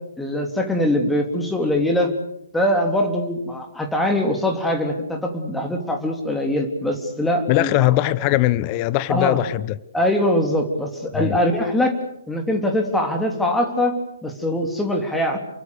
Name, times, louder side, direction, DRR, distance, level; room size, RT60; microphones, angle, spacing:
voice 1, 0.2-2.1 2.5-7.7 9.1-9.4 9.9-11.9 12.3-13.9 14.2-15.4, left 1 dB, 5° left, 3.5 m, -22 dB
voice 2, 7.5-9.8 11.1-11.4, left 17 dB, 30° left, 1.0 m, -20 dB
28.5 x 24.0 x 6.7 m
figure-of-eight pair, 130°, 0 cm